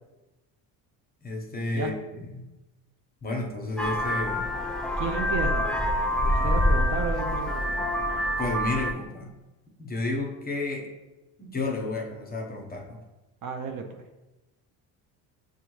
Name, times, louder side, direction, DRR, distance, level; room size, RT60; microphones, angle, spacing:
voice 1, 1.2-2.5 3.2-4.5 8.4-9.3 9.8-10.9 11.4-13.0, left 2 dB, 20° left, 1 dB, 0.9 m, -31 dB
Vehicle horn car horn honking, 3.8-8.9, equal, ahead, 0.4 m, -26 dB
voice 2, 5.0-5.7 6.2-7.8 13.4-14.0, right 5 dB, 45° right, 4 dB, 0.6 m, -33 dB
6.7 x 2.3 x 3.1 m, 1.0 s
supercardioid pair, 80°, 43 cm